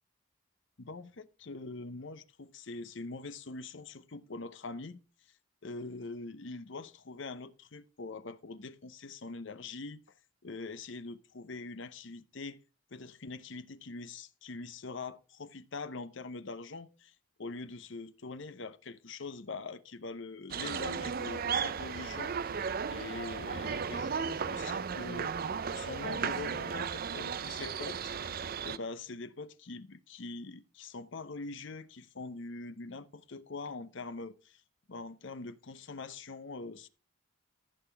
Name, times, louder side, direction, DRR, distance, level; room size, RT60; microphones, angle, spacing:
voice 1, 0.8-5.0 5.6-10.0 10.4-12.6 12.9-17.1 17.4-22.6 22.9-25.3 25.7-28.3 28.6-34.6 34.9-36.9, left 3 dB, 60° left, 0.8 m, -43 dB
sound 1, 20.5-28.8, right 6 dB, 45° right, 0.5 m, -35 dB
14.5 x 6.6 x 3.4 m
head